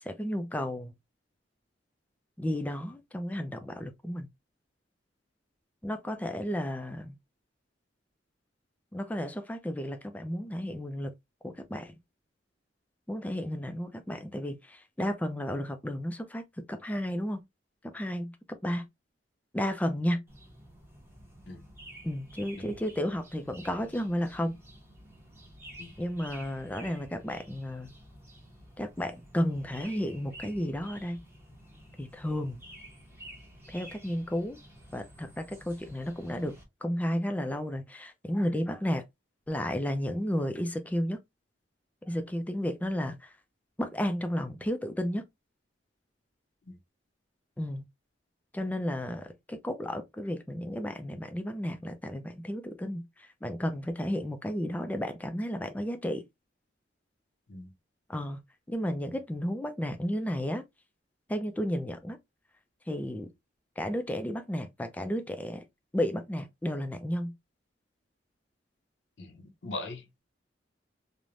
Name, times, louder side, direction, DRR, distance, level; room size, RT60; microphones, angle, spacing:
voice 1, 0.0-0.9 2.4-4.3 5.8-7.2 8.9-11.1 11.4-11.9 13.1-17.4 17.8-18.3 18.6-18.9 19.5-20.2 22.0-24.5 26.0-27.9 28.8-31.2 32.0-32.6 33.7-34.6 34.9-36.6 36.8-39.0 39.5-41.2 42.1-43.3 43.8-45.2 47.6-47.9 48.5-56.2 58.1-58.4 58.7-60.6 61.3-62.2 62.9-63.3 63.8-65.7 65.9-67.3, equal, 10° left, 0.3 m, -33 dB
sound 1, 20.3-36.6, right 1 dB, 15° right, 0.8 m, -51 dB
voice 2, 69.2-70.1, left 2 dB, 70° left, 0.6 m, -41 dB
3.1 x 2.1 x 2.5 m
head